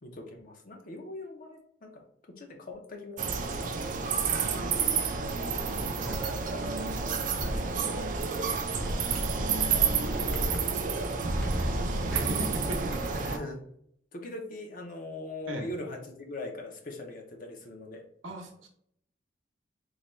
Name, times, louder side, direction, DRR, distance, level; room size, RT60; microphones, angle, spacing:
voice 1, 0.0-3.2 4.5-5.9 10.0-10.2 13.1-13.6 14.1-18.0, left 2 dB, 45° left, 2 dB, 0.6 m, -41 dB
sound 1, 3.2-13.4, right 5 dB, 45° right, 0.4 m, -30 dB
sound 2, 6.1-6.2 7.4-7.6 8.7-10.6 11.3-13.0, equal, 5° left, 0.7 m, -34 dB
voice 2, 11.6-12.9 15.5-15.7 18.2-18.7, right 1 dB, 90° right, 3 dB, 0.7 m, -37 dB
3.9 x 2.2 x 3.0 m, 0.68 s
head